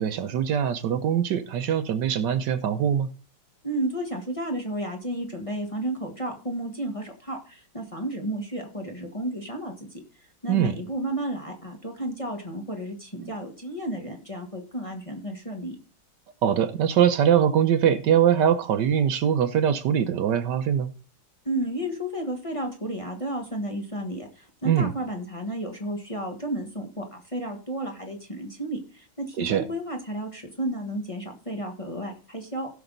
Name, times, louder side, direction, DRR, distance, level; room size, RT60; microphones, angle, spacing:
voice 1, 0.0-3.1 10.5-10.7 13.2-13.3 16.4-20.9 24.6-24.9 29.4-29.6, right 9 dB, 70° right, 1.3 m, -22 dB
voice 2, 3.6-15.8 21.4-32.7, right 1 dB, 20° left, 1.3 m, -32 dB
16.0 x 6.2 x 3.9 m
omnidirectional pair, 2.1 m